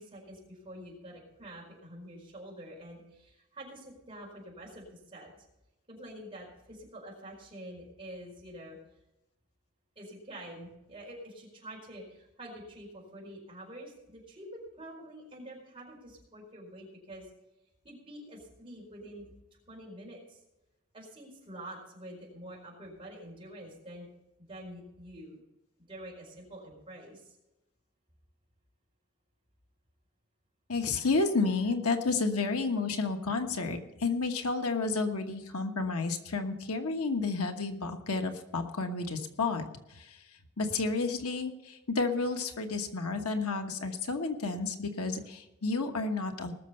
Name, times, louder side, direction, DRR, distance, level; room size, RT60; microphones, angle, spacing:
voice 1, 0.0-5.4 5.9-8.8 10.0-17.3 17.8-19.3 19.7-20.4 20.9-24.1 24.4-25.4 25.9-27.4, right 1 dB, 25° right, -2 dB, 4.6 m, -47 dB
voice 2, 30.7-39.6 39.9-40.2 40.6-46.5, left 3 dB, 85° left, 5 dB, 1.3 m, -31 dB
19.5 x 6.7 x 5.6 m, 0.94 s
head